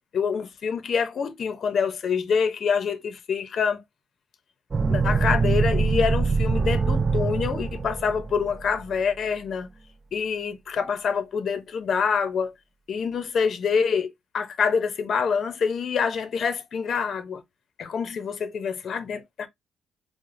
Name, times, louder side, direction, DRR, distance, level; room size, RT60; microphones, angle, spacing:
voice 1, 0.1-3.8 4.9-9.7 10.1-12.5 12.9-17.4 17.8-19.5, left 6 dB, 55° left, 0.6 m, -26 dB
sound 1, 4.7-8.8, right 4 dB, 35° right, 0.4 m, -24 dB
4.7 x 2.0 x 2.5 m
cardioid pair, 90°, 0 cm